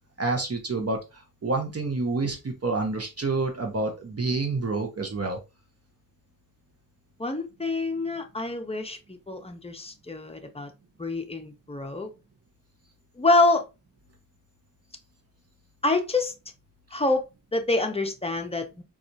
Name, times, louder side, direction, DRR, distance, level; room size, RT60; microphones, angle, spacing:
voice 1, 0.2-5.4, right 3 dB, 45° right, 0.7 m, -28 dB
voice 2, 7.2-10.7 11.0-12.1 13.2-13.7 15.8-16.3 16.9-17.2 17.5-18.8, left 2 dB, 20° left, 0.6 m, -26 dB
4.1 x 2.4 x 2.6 m
wide cardioid pair, 75°, 34 cm